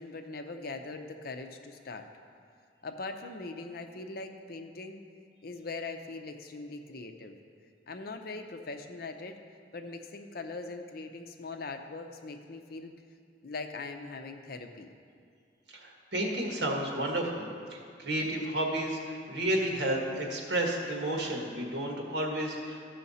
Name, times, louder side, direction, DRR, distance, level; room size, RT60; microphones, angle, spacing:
voice 1, 0.0-2.1 2.8-5.0 5.4-7.3 7.9-9.4 9.7-12.9 13.4-14.9, left 3 dB, 60° left, 6 dB, 0.6 m, -41 dB
voice 2, 15.7-22.8, right 1 dB, 70° right, 0 dB, 1.6 m, -32 dB
13.5 x 5.8 x 4.2 m, 2.3 s
head